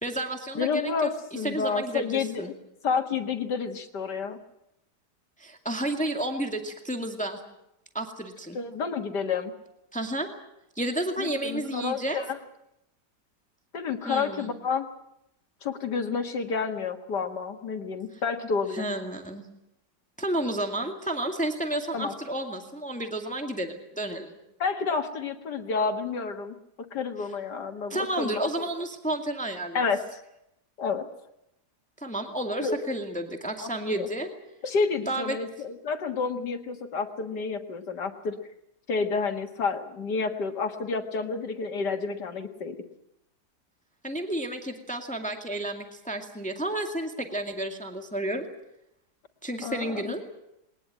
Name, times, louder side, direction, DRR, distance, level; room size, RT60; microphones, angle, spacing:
voice 1, 0.0-2.5 5.4-7.4 7.9-8.6 9.9-10.3 10.8-12.2 14.0-14.5 18.7-19.5 20.2-24.4 27.9-29.8 32.0-34.3 35.1-35.4 44.0-48.5 49.4-50.2, right 1 dB, 5° left, 4 dB, 2.0 m, -31 dB
voice 2, 0.6-2.5 2.8-4.4 8.5-9.5 11.2-12.4 13.7-14.9 15.6-18.8 21.9-22.2 24.6-26.6 26.9-28.7 29.7-30.2 30.8-31.1 32.6-32.8 33.6-34.1 34.6-38.4 38.9-42.8 49.6-50.1, left 5 dB, 90° left, 5 dB, 2.3 m, -30 dB
21.5 x 20.0 x 8.8 m, 0.82 s
omnidirectional pair, 1.8 m